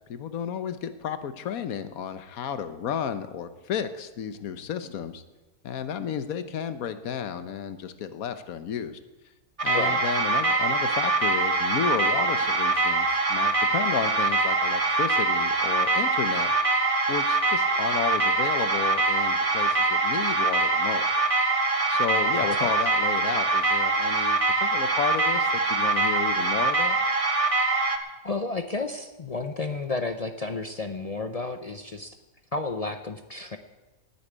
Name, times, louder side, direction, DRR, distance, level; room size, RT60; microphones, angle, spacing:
voice 1, 0.1-5.2 5.6-9.0 9.6-16.5 17.1-21.2 21.9-27.0, left 8 dB, 85° left, 11 dB, 1.3 m, -32 dB
sound 1, 9.6-28.0, right 3 dB, 25° right, 1.1 m, -24 dB
voice 2, 22.4-22.7 28.2-32.2 32.5-33.6, left 3 dB, 45° left, 8 dB, 0.5 m, -32 dB
9.9 x 9.8 x 9.5 m, 1.1 s
omnidirectional pair, 1.5 m